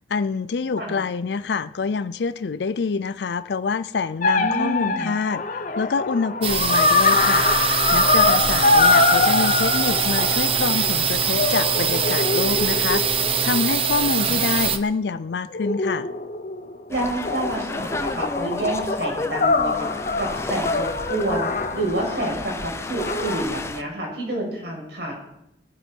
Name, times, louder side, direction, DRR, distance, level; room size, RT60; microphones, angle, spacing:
voice 1, 0.1-7.5 7.9-16.1, left 5 dB, 70° left, 13 dB, 0.5 m, -26 dB
sound 1, 4.2-11.0 11.4-14.7 15.5-16.8 17.2-22.4 23.0-23.4, left 3 dB, 45° left, 0.8 m, -23 dB
voice 2, 4.4-5.1 14.2-14.4 16.9-19.9 20.2-25.1, right 1 dB, 70° right, -1 dB, 6.3 m, -28 dB
sound 2, 6.4-14.8, right 6 dB, 30° right, 0.8 m, -23 dB
sound 3, 16.9-23.8, left 2 dB, 15° left, 0.6 m, -32 dB
21.0 x 10.5 x 4.6 m, 0.82 s
head